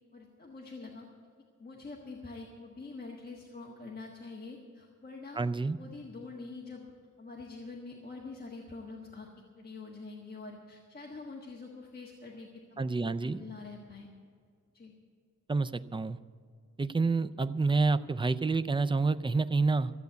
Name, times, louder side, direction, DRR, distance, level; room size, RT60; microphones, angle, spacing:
voice 1, 0.1-1.1 1.6-5.4 5.8-6.9 7.2-9.3 9.5-12.8 13.2-14.1 14.7-14.9, left 3 dB, 30° left, -1 dB, 1.4 m, -45 dB
voice 2, 5.4-5.8 12.8-13.4 15.5-16.2 16.8-19.9, right 3 dB, 15° right, 11 dB, 0.3 m, -28 dB
14.0 x 8.1 x 8.1 m, 2.2 s
wide cardioid pair, 165°, 30 cm